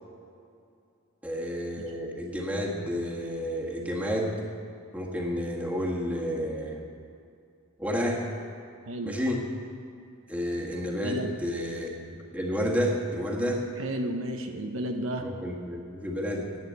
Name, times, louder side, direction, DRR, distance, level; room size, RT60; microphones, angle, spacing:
voice 1, 1.2-4.4 4.9-6.8 7.8-8.2 9.0-9.4 10.3-11.9 12.3-13.7 15.2-16.5, equal, 5° right, -2 dB, 1.6 m, -30 dB
voice 2, 8.9-9.2 11.0-11.3 13.8-15.3, right 1 dB, 65° right, 4 dB, 0.9 m, -32 dB
11.0 x 8.8 x 8.7 m, 2.5 s
head